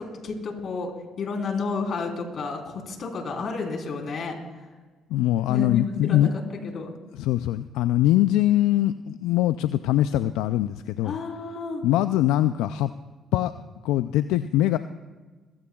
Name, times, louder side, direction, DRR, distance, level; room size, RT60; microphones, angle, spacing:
voice 1, 0.0-4.3 5.5-6.9 11.0-11.8, left 4 dB, 60° left, 2 dB, 3.6 m, -31 dB
voice 2, 5.1-6.3 7.1-11.2 11.8-12.9 13.3-13.5 13.8-14.8, left 13 dB, 85° left, 12 dB, 0.3 m, -22 dB
22.5 x 15.5 x 2.3 m, 1.3 s
supercardioid pair, 70°, 0 cm